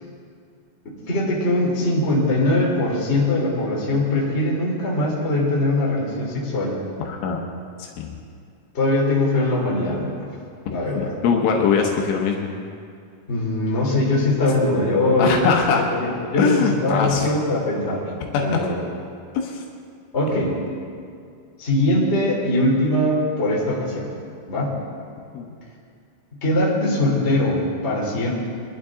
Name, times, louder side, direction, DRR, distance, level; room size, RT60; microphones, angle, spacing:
voice 1, 1.1-6.7 8.7-10.3 10.7-11.1 13.3-15.4 15.8-16.6 16.8-18.1 18.4-18.7 20.1-20.6 21.6-24.1 24.5-24.8 26.4-28.3, left 1 dB, 15° left, -4 dB, 2.4 m, -21 dB
voice 2, 7.1-7.4 7.8-8.2 10.9-12.5 15.2-15.9 16.4-17.3 18.3-18.6 19.3-19.6 25.3-25.5, left 6 dB, 75° left, 1 dB, 3.4 m, -21 dB
23.5 x 11.5 x 3.7 m, 2.2 s
omnidirectional pair, 5.8 m